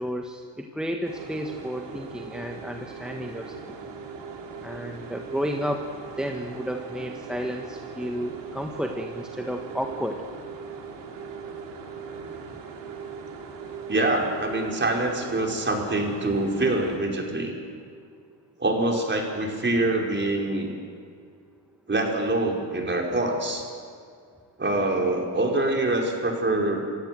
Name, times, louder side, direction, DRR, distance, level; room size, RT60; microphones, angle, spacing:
voice 1, 0.0-3.7 4.6-5.9 6.2-10.2, equal, ahead, 3 dB, 1.6 m, -32 dB
sound 1, 1.0-17.0, right 5 dB, 80° right, 3.4 m, -39 dB
voice 2, 13.9-17.5 18.6-20.7 21.9-23.7 24.6-26.8, right 2 dB, 25° right, 0 dB, 5.1 m, -25 dB
27.5 x 16.0 x 7.9 m, 2.2 s
cardioid pair, 90°, 43 cm